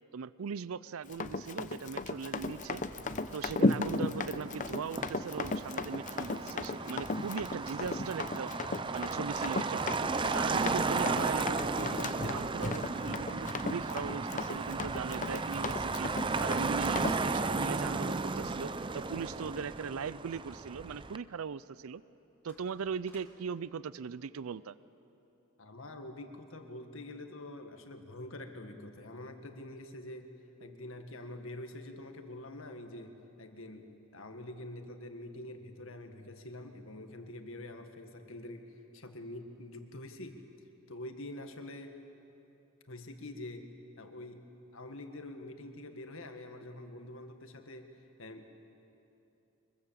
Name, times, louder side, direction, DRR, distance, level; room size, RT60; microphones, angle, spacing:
voice 1, 0.1-2.8 3.3-8.5 8.9-9.8 10.3-16.1 16.4-22.0 22.4-24.8, right 6 dB, 80° right, 18 dB, 0.5 m, -39 dB
Run, 1.1-17.2, left 3 dB, 35° left, 0.7 m, -35 dB
Motor vehicle (road), 2.4-21.2, right 3 dB, 25° right, 0.5 m, -35 dB
sound 1, 9.3-10.9 12.2-15.0 15.7-15.8 16.0-16.1 16.8-18.9 22.4-23.5, left 1 dB, 10° left, 2.5 m, -61 dB
voice 2, 25.6-30.3 30.6-40.4 40.9-42.0 42.8-47.9 48.2-48.5, left 1 dB, 70° left, 6 dB, 1.8 m, -46 dB
24.0 x 22.0 x 7.5 m, 3.0 s
head